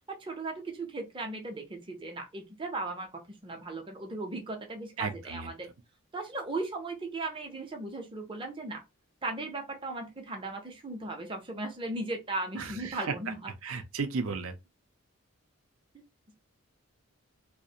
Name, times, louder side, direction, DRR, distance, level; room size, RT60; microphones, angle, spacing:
voice 1, 0.1-5.7 6.1-8.8 9.2-13.5 15.9-16.0, right 2 dB, 25° right, 0.5 m, -37 dB
voice 2, 5.0-5.5 12.6-12.7 13.6-14.5, right 4 dB, 75° right, 0.5 m, -34 dB
2.4 x 2.1 x 2.7 m
head